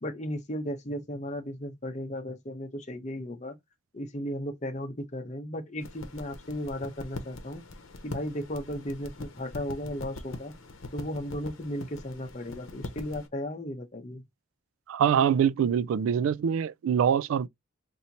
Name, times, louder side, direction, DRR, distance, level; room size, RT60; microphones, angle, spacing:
voice 1, 0.0-3.6 3.9-7.6 8.0-10.5 10.9-14.3, equal, 35° left, 0.8 m, -35 dB
sound 1, 5.8-13.3, left 2 dB, 85° left, 0.8 m, -43 dB
voice 2, 14.9-17.5, right 8 dB, 90° right, 0.3 m, -24 dB
4.2 x 2.7 x 2.7 m
head